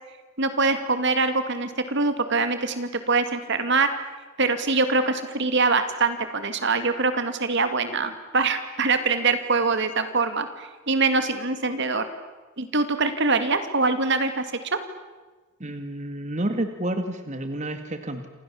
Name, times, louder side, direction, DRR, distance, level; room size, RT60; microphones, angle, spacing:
voice 1, 0.4-3.9 4.4-12.0 12.6-14.4 14.7-14.8, right 3 dB, 60° right, 9 dB, 2.5 m, -24 dB
voice 2, 15.6-18.3, right 1 dB, 35° right, 7 dB, 2.1 m, -30 dB
29.0 x 27.0 x 7.3 m, 1.3 s
head